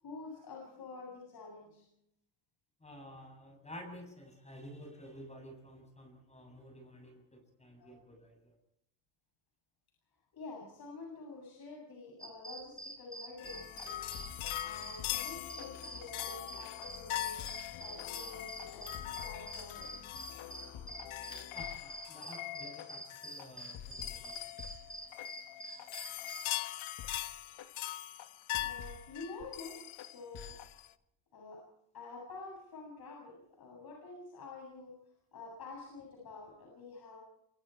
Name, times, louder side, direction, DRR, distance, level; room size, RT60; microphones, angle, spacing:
voice 1, 0.0-1.8 7.8-7.9 10.3-13.9 14.6-17.4 17.8-20.0 28.6-30.6 31.3-31.6 31.9-34.9 35.3-37.2, left 3 dB, 50° left, -1 dB, 7.8 m, -48 dB
voice 2, 2.8-8.5 21.5-24.4, equal, 15° left, 3 dB, 7.5 m, -51 dB
sound 1, 12.2-26.5, right 1 dB, 5° right, 6.5 m, -47 dB
sound 2, 13.4-30.9, left 15 dB, 90° left, 1.2 m, -42 dB
sound 3, 13.4-24.2 24.6-24.8 25.2-25.3 25.8-25.9 26.4-26.5 27.0-27.2 27.6-27.7 28.2-29.0 29.4-29.5 29.8-30.7, left 9 dB, 70° left, 2.6 m, -50 dB
27.0 x 25.0 x 4.6 m, 0.80 s
cardioid pair, 135°, 47 cm